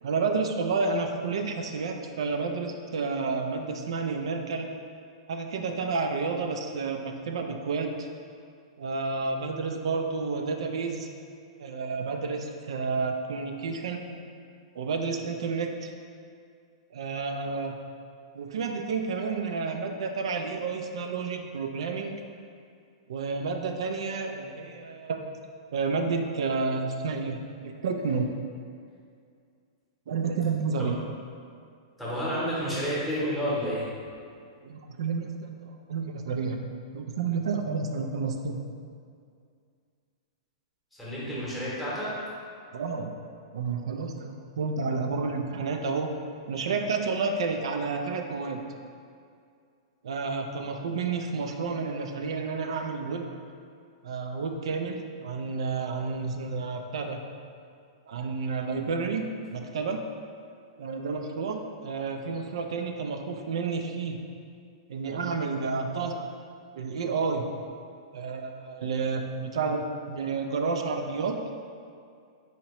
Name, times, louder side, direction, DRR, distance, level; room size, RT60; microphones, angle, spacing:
voice 1, 0.0-4.7 5.3-8.1 8.8-11.1 11.6-14.3 14.7-15.9 16.9-17.7 18.3-22.1 23.1-25.2 25.7-28.3 30.1-31.0 34.6-36.6 36.9-38.6 42.7-43.1 43.5-46.1 46.5-48.6 50.0-53.3 54.0-57.2 58.1-60.0 60.8-64.2 64.9-66.2 66.8-67.5 68.1-71.4, right 4 dB, 75° right, 4 dB, 0.4 m, -30 dB
voice 2, 32.0-33.9 41.0-42.2, equal, ahead, -8 dB, 0.9 m, -30 dB
4.3 x 2.8 x 3.0 m, 2.3 s
hypercardioid pair, 160°, 3 cm